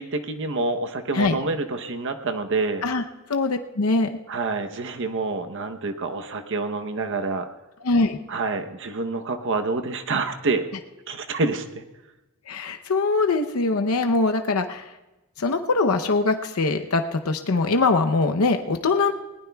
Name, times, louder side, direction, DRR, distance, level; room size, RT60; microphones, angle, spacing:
voice 1, 0.0-2.8 4.3-7.5 8.3-10.7 11.1-11.8, right 3 dB, 60° right, 7 dB, 0.9 m, -27 dB
voice 2, 3.3-4.1 7.8-8.2 12.5-14.9 15.4-19.1, left 3 dB, 85° left, 5 dB, 0.7 m, -22 dB
20.0 x 18.5 x 2.3 m, 1.1 s
head